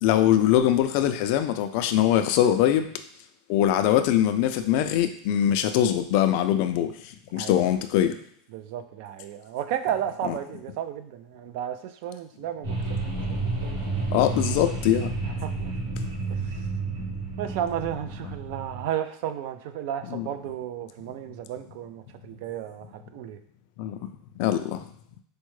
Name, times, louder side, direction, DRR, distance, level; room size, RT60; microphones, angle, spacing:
voice 1, 0.0-2.9 3.5-6.9 7.3-8.2 10.2-10.3 14.1-15.1 20.1-20.3 23.8-24.0 24.4-24.8, left 11 dB, 55° left, 8 dB, 0.3 m, -22 dB
voice 2, 8.5-12.8 13.3-13.9 15.2-15.7 16.3-16.5 17.4-22.9 23.1-23.4, right 10 dB, 60° right, 9 dB, 0.3 m, -33 dB
sound 1, 12.6-18.8, right 3 dB, 85° right, 1.2 m, -31 dB
4.4 x 2.1 x 3.1 m, 0.64 s
supercardioid pair, 150°, 0 cm